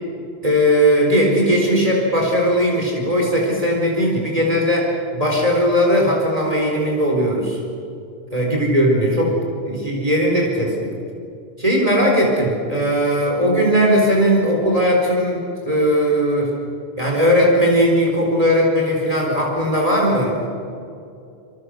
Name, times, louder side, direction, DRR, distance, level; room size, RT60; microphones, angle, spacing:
voice 1, 0.4-7.6 8.3-9.3 9.6-10.7 11.6-16.5 17.0-20.5, equal, 35° right, -2 dB, 4.4 m, -18 dB
27.5 x 24.0 x 6.5 m, 2.6 s
omnidirectional pair, 1.1 m